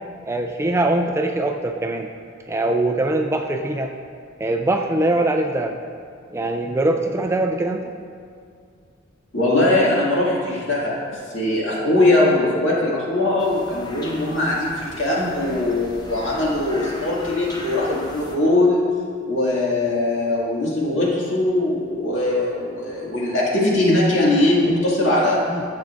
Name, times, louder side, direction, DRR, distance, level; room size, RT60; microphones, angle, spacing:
voice 1, 0.3-2.1 2.5-3.9 4.4-5.8 6.3-7.8 25.5-25.6, right 2 dB, 15° right, 4 dB, 0.3 m, -22 dB
voice 2, 9.3-18.8 19.2-25.4, left 2 dB, 65° left, -6 dB, 2.1 m, -20 dB
sound 1, 13.4-18.4, left 1 dB, 20° left, 0.7 m, -38 dB
11.0 x 7.4 x 2.5 m, 2.3 s
head